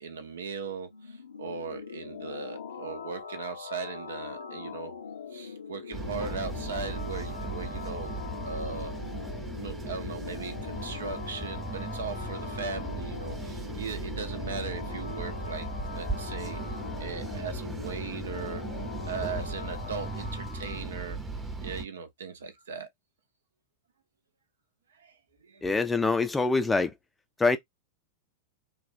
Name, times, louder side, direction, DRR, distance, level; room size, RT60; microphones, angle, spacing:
voice 1, 0.0-4.9 5.3-8.9 9.6-16.6 17.0-18.6 19.1-21.2 21.6-22.9 25.0-25.2 25.4-25.6, right 5 dB, 65° right, 0.6 m, -38 dB
sound 1, 0.9-20.8, left 6 dB, 70° left, 0.6 m, -42 dB
sound 2, 5.9-21.9, right 2 dB, 15° right, 0.8 m, -37 dB
voice 2, 25.6-26.9 27.4-27.6, left 3 dB, 10° left, 0.5 m, -24 dB
3.3 x 2.3 x 2.5 m
figure-of-eight pair, 90°, 0 cm